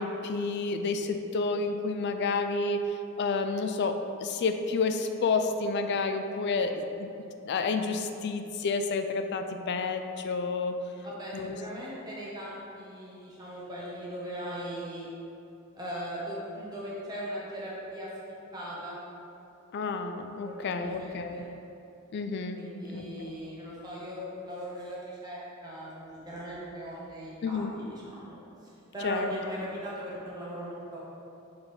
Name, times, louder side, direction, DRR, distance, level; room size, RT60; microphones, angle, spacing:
voice 1, 0.0-2.9 3.2-7.1 7.4-10.8 11.3-11.6 19.7-21.4 22.1-22.7 22.9-23.3 27.4-27.7 29.0-29.3, left 4 dB, 50° left, 7 dB, 0.4 m, -30 dB
voice 2, 11.0-15.1 15.7-18.1 18.5-19.0 20.4-21.5 22.5-28.3 28.6-31.0, equal, 20° right, -7 dB, 1.0 m, -39 dB
6.7 x 3.4 x 4.4 m, 2.8 s
head